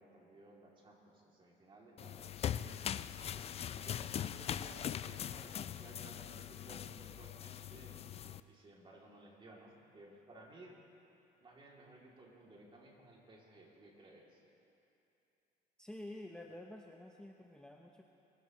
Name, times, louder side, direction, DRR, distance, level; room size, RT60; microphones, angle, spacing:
voice 1, 0.0-2.7 3.8-8.0 8.5-10.8 11.4-14.4, right 1 dB, 30° right, -3 dB, 2.8 m, -58 dB
sound 1, 2.0-8.4, left 9 dB, 35° left, 0.4 m, -41 dB
voice 2, 15.8-18.0, left 1 dB, 5° left, 1 dB, 0.7 m, -49 dB
21.5 x 14.0 x 3.1 m, 2.8 s
cardioid pair, 110°, 17 cm